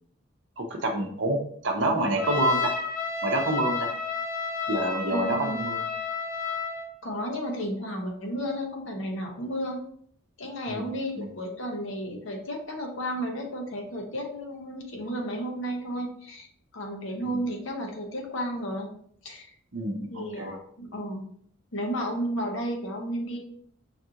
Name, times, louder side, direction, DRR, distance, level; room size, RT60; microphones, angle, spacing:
voice 1, 0.6-2.7 3.2-3.9 4.7-5.8 10.7-10.8 11.2-11.3 19.7-20.5, right 2 dB, 60° right, 3 dB, 0.7 m, -27 dB
Trumpet, 2.2-6.9, left 5 dB, 40° left, 0.5 m, -31 dB
voice 2, 5.1-5.6 7.0-9.8 10.4-16.5 16.7-18.9 19.2-19.5 20.1-21.3 21.7-23.4, equal, 70° left, 2 dB, 0.8 m, -33 dB
5.2 x 2.5 x 2.8 m, 0.64 s
head